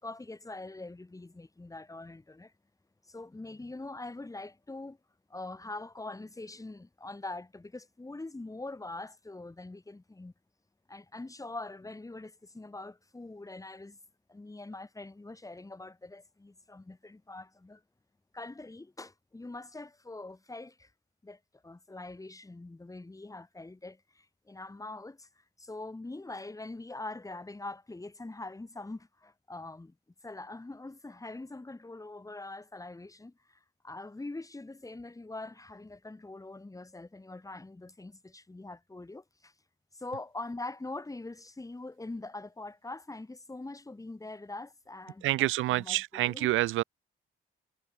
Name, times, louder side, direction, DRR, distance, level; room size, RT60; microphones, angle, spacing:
voice 1, 0.0-2.5 3.0-5.0 5.3-10.3 10.9-14.0 14.3-17.8 18.3-20.9 21.2-29.9 30.2-39.5 39.9-46.5, left 2 dB, 15° left, 6.4 m, -43 dB
voice 2, 45.2-46.8, right 16 dB, 85° right, 1.0 m, -27 dB
cardioid pair, 90°, 20 cm